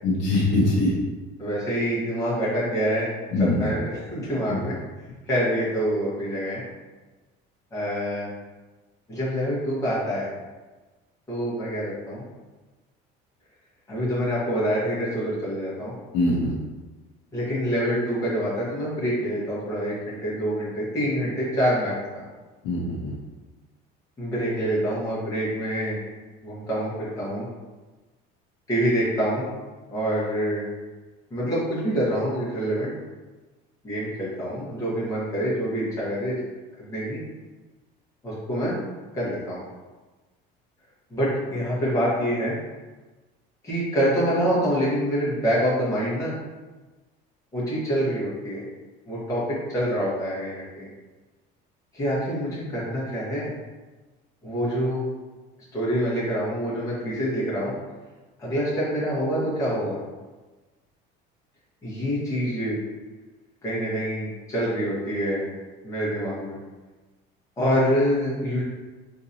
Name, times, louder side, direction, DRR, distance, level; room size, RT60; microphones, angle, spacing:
voice 1, 0.0-0.9 3.3-3.7 4.5-4.6 16.1-16.5 22.6-23.1, left 2 dB, 60° left, -4 dB, 0.7 m, -22 dB
voice 2, 1.4-3.1 3.4-4.8 5.3-6.6 7.7-8.3 9.1-10.3 11.3-12.2 13.9-15.9 17.3-22.2 24.2-26.0 26.4-27.5 28.7-29.5 29.9-30.6 31.3-32.9 33.8-36.4 36.8-37.2 38.2-38.8 39.1-39.6 41.1-42.5 43.6-46.4 47.5-48.6 49.1-49.4 49.7-50.9 51.9-53.5 54.4-55.1 55.7-57.7 58.4-60.0 61.8-62.8 63.6-65.5 65.8-66.6 67.6-68.6, equal, 15° left, -9 dB, 1.2 m, -26 dB
3.8 x 2.7 x 2.7 m, 1.2 s
cardioid pair, 170°, 20 cm